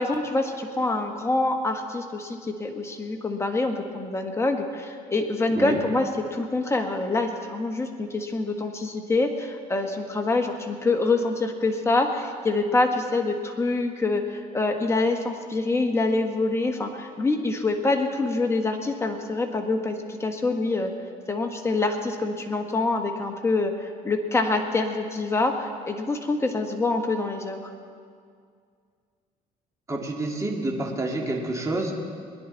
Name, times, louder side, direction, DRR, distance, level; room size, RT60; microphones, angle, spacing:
voice 1, 0.0-20.9 21.3-27.7, left 2 dB, 15° left, 3 dB, 1.4 m, -26 dB
voice 2, 29.9-31.9, right 2 dB, 20° right, 0 dB, 2.1 m, -28 dB
21.0 x 10.5 x 4.0 m, 2.1 s
cardioid pair, 110°, 17 cm